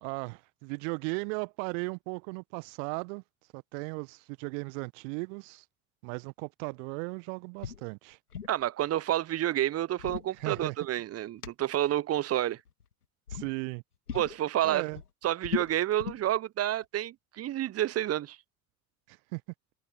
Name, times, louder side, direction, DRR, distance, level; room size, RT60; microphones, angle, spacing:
voice 1, 0.0-3.2 3.5-5.6 6.0-8.2 10.3-10.8 13.3-13.8 14.6-15.0 19.1-19.4, right 36 dB, 55° right, 1.3 m, -36 dB
sound 1, 7.6-7.8 8.1-8.6 9.7-11.0 11.4-11.5 12.6-12.9 13.3-13.5 14.1-14.4 14.7-16.3, left 7 dB, 80° left, 1.8 m, -38 dB
voice 2, 8.5-12.6 14.1-14.8 15.2-18.4, right 13 dB, 35° right, 0.8 m, -29 dB
open air
figure-of-eight pair, 65°, 45 cm